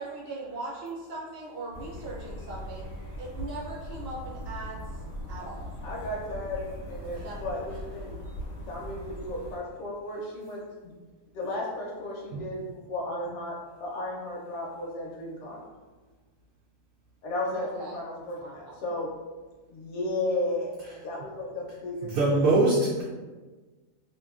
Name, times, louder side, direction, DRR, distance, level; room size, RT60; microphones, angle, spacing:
voice 1, 0.0-2.9 3.2-4.8 5.3-5.6 7.1-7.4 17.6-18.0 18.4-18.8, right 2 dB, 65° right, -4 dB, 0.6 m, -39 dB
sound 1, 1.7-9.6, equal, 85° left, 1.1 m, -40 dB
voice 2, 5.8-8.2 8.6-10.9 11.3-15.6 17.2-19.1 19.7-22.4, left 1 dB, 65° left, -3 dB, 0.9 m, -34 dB
voice 3, 22.1-23.0, right 2 dB, 80° right, -7 dB, 1.0 m, -22 dB
2.7 x 2.5 x 2.3 m, 1.3 s
omnidirectional pair, 1.4 m